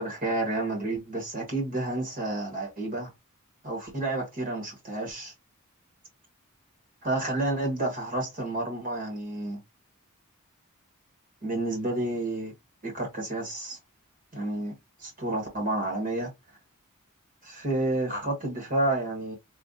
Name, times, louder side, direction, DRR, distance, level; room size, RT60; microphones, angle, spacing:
voice 1, 0.0-3.1 3.6-5.3 7.0-9.6 11.4-12.5 12.8-13.8 14.3-14.7 15.0-16.3 17.4-19.4, right 2 dB, 40° right, 1.2 m, -30 dB
3.6 x 2.4 x 2.7 m
head